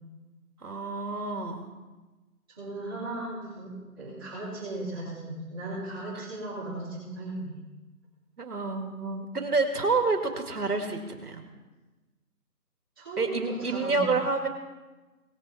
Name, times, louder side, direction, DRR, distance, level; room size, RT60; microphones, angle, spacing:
voice 1, 0.6-1.7 6.1-6.3 8.4-11.4 13.2-14.5, right 3 dB, 70° right, 5 dB, 2.5 m, -28 dB
voice 2, 2.5-7.6 13.0-14.1, right 2 dB, 15° right, -13 dB, 2.8 m, -37 dB
19.0 x 7.4 x 4.2 m, 1.2 s
figure-of-eight pair, 175°, 46 cm